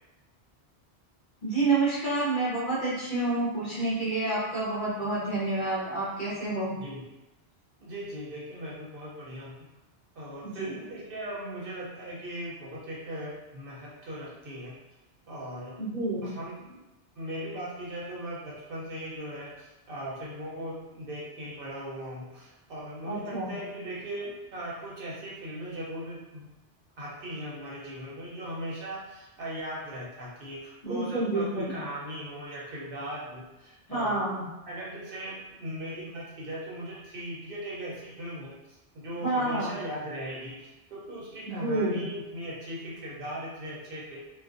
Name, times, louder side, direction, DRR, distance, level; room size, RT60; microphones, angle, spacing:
voice 1, 1.4-6.7 10.4-10.7 15.8-16.3 23.0-23.5 30.8-31.7 33.9-34.5 39.2-39.8 41.5-42.0, right 2 dB, 50° left, -8 dB, 1.1 m, -29 dB
voice 2, 6.6-7.0 7.8-9.6 10.1-14.7 15.3-15.7 16.2-16.8 17.2-26.5 27.0-34.2 34.7-38.5 38.9-44.2, equal, 65° right, -5 dB, 0.8 m, -38 dB
2.4 x 2.4 x 2.4 m, 1.0 s
omnidirectional pair, 1.1 m